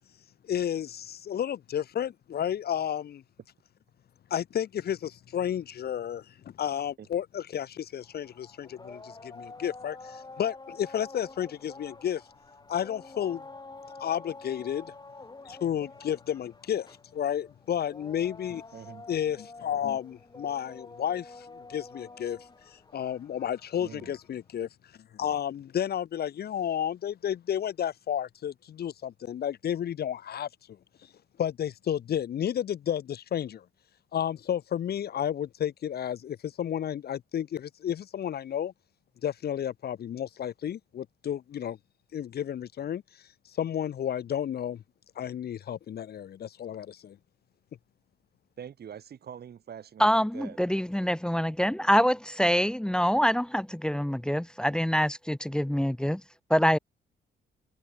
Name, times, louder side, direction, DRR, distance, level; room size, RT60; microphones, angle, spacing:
voice 1, 0.4-3.2 4.3-12.2 12.7-13.4 14.0-14.9 15.5-16.9 17.1-18.6 19.1-22.4 22.7-24.7 25.1-30.5 31.4-33.6 34.1-38.7 39.2-41.8 42.1-43.0 43.6-44.8 45.2-47.2, left 9 dB, 55° left, 0.8 m, -32 dB
sound 1, 8.0-24.4, left 3 dB, 20° left, 4.4 m, -48 dB
voice 2, 18.7-19.1 23.8-24.1 48.6-50.6, right 8 dB, 55° right, 2.0 m, -44 dB
voice 3, 50.0-56.2 56.5-56.8, equal, 5° left, 1.1 m, -25 dB
cardioid pair, 90°, 20 cm